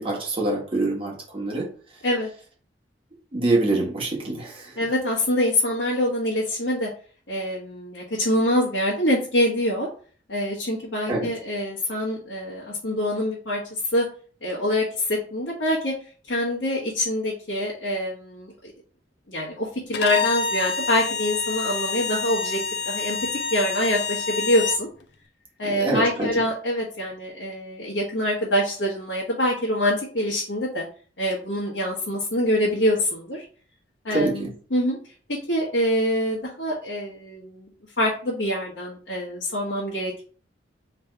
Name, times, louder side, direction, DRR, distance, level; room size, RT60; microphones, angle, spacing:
voice 1, 0.0-1.7 3.3-4.8 11.1-11.3 25.6-26.4 34.1-34.5, right 2 dB, 30° right, -3 dB, 1.5 m, -25 dB
voice 2, 4.8-6.9 7.3-9.9 10.3-14.1 14.4-15.9 16.3-18.5 19.3-22.6 22.8-23.2 23.5-24.9 25.6-30.8 31.2-33.4 34.0-35.0 35.5-37.7 38.0-40.2, left 1 dB, 85° left, -5 dB, 1.3 m, -25 dB
Bowed string instrument, 19.9-24.8, left 4 dB, 65° left, 0.5 m, -28 dB
3.4 x 3.2 x 4.6 m, 0.42 s
head